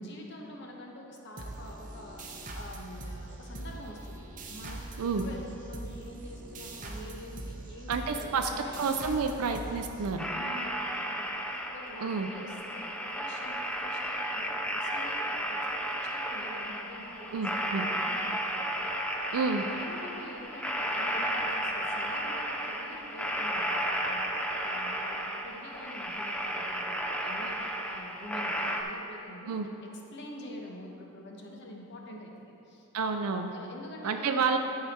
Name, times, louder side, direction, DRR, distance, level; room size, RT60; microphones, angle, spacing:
voice 1, 0.0-4.2 4.5-8.9 10.3-15.7 15.9-18.5 18.8-19.3 19.7-29.6 30.1-32.9 33.5-34.4, left 1 dB, 50° left, 0 dB, 1.0 m, -47 dB
sound 1, 1.4-10.6, right 2 dB, 35° right, 0.7 m, -42 dB
voice 2, 7.9-8.5 8.8-10.3 12.0-12.3 17.3-17.8 19.3-19.6 29.5-29.7 32.9-33.5 34.0-34.6, right 5 dB, 85° right, 5 dB, 0.4 m, -29 dB
sound 2, 10.2-28.8, equal, 5° left, 0.4 m, -33 dB
12.0 x 4.9 x 4.2 m, 2.9 s
head